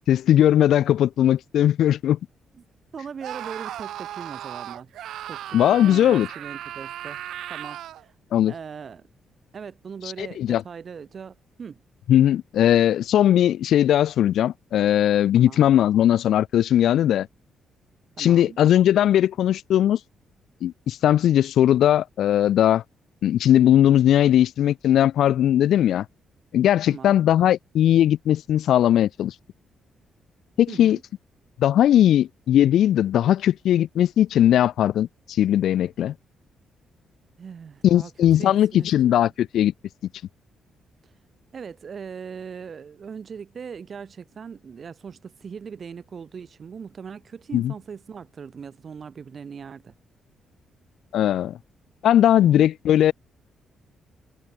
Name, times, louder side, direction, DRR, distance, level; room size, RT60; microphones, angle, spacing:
voice 1, 0.1-2.2 5.5-6.3 8.3-8.5 10.2-10.6 12.1-17.3 18.2-20.0 20.6-22.8 23.2-26.1 26.5-29.3 30.6-31.0 31.6-35.1 35.4-36.1 37.8-39.7 47.5-47.7 51.1-51.6 52.0-53.1, left 11 dB, 75° left, 0.4 m, -19 dB
voice 2, 2.9-4.9 5.3-7.2 7.5-8.1 8.5-9.1 9.5-11.8 15.3-15.7 18.2-18.6 26.9-27.3 30.7-31.0 37.4-38.1 38.4-39.1 41.5-49.9 52.4-52.7, right 6 dB, 50° right, 3.9 m, -39 dB
Screaming, 3.2-8.1, right 12 dB, 80° right, 2.6 m, -36 dB
cardioid pair, 70°, 0 cm